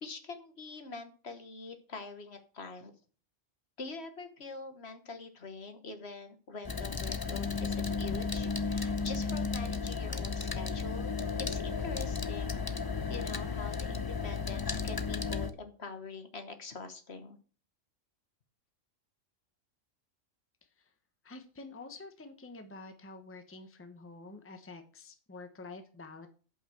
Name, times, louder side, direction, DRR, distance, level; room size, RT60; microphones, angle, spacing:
voice 1, 0.0-2.9 3.8-11.1 11.5-12.7 13.1-17.4, left 4 dB, 55° left, 8 dB, 1.4 m, -44 dB
sound 1, 6.6-15.5, left 5 dB, 25° left, 0.5 m, -34 dB
voice 2, 21.2-26.3, left 3 dB, 10° left, 7 dB, 1.0 m, -48 dB
8.0 x 5.7 x 7.6 m, 0.39 s
omnidirectional pair, 1.3 m